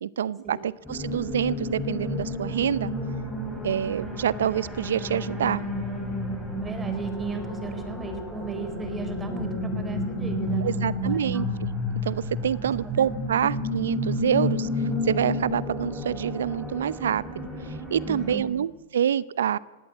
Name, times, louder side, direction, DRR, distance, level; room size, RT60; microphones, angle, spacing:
voice 1, 0.0-2.9 3.6-5.6 10.6-11.7 12.0-19.6, right 9 dB, 75° right, 20 dB, 0.7 m, -27 dB
sound 1, 0.8-18.4, left 1 dB, 5° left, 6.6 m, -31 dB
voice 2, 6.6-11.5 12.8-12.9 18.1-18.4, right 4 dB, 15° right, 7 dB, 4.4 m, -36 dB
18.5 x 17.5 x 8.7 m, 1.3 s
hypercardioid pair, 105°, 0 cm